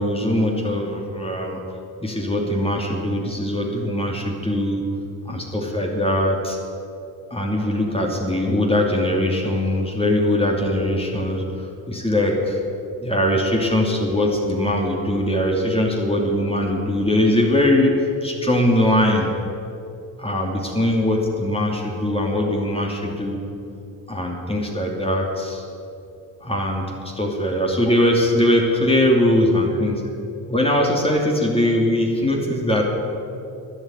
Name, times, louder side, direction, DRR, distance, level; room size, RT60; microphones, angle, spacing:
voice 1, 0.0-1.6 2.0-4.8 5.2-6.6 7.3-11.4 11.9-12.6 13.0-19.3 20.2-23.4 24.1-25.6 26.4-30.0 30.5-32.8, left 1 dB, 15° left, -1 dB, 2.8 m, -21 dB
12.5 x 9.2 x 9.0 m, 2.7 s
cardioid pair, 80°, 39 cm